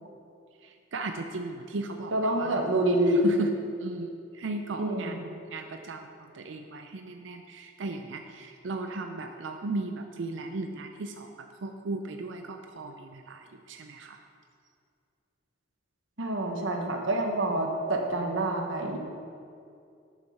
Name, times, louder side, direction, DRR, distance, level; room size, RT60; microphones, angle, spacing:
voice 1, 0.6-2.6 3.1-3.5 3.8-6.1 6.3-14.2, right 3 dB, 70° right, 5 dB, 0.5 m, -36 dB
voice 2, 2.1-3.3 4.8-5.1 16.2-19.0, right 1 dB, 85° right, 2 dB, 1.3 m, -27 dB
8.0 x 7.0 x 5.5 m, 2.4 s
head